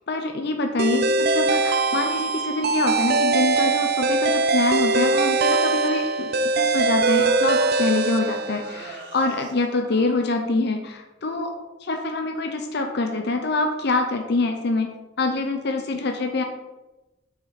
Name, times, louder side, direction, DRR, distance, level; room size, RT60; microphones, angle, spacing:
voice 1, 0.1-11.5 11.8-16.4, left 2 dB, 60° left, 4 dB, 0.8 m, -25 dB
sound 1, 0.8-8.9, right 3 dB, 55° right, 0.5 m, -22 dB
sound 2, 5.4-5.5 6.4-6.5 6.9-10.8 11.2-11.3, right 3 dB, 75° right, 1.7 m, -40 dB
7.9 x 6.2 x 4.2 m, 1.1 s
head